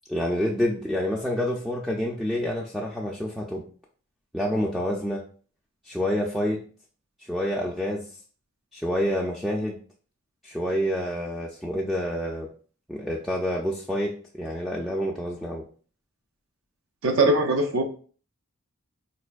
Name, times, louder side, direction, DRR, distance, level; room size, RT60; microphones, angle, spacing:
voice 1, 0.1-3.6 4.3-5.2 5.9-6.6 7.2-8.0 8.7-9.8 10.4-12.5 12.9-15.6, equal, ahead, -3 dB, 0.3 m, -28 dB
voice 2, 17.0-17.8, right 2 dB, 75° right, 3 dB, 0.5 m, -21 dB
4.1 x 2.5 x 2.2 m, 0.41 s
head